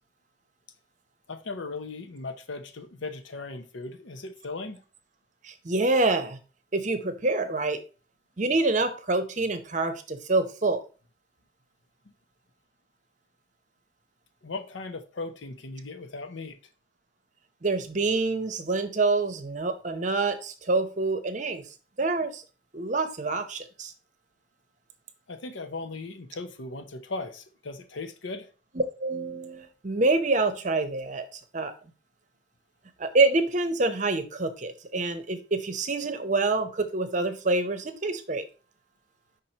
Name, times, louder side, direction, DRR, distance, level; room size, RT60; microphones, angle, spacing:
voice 1, 1.3-4.8 14.4-16.6 25.3-28.5, left 3 dB, 80° left, 0.8 m, -37 dB
voice 2, 5.4-6.4 6.7-7.8 8.4-10.8 17.6-21.6 22.0-22.4 22.7-23.9 28.7-31.7 33.0-38.4, right 3 dB, 40° right, 0.7 m, -26 dB
5.4 x 4.2 x 4.3 m
head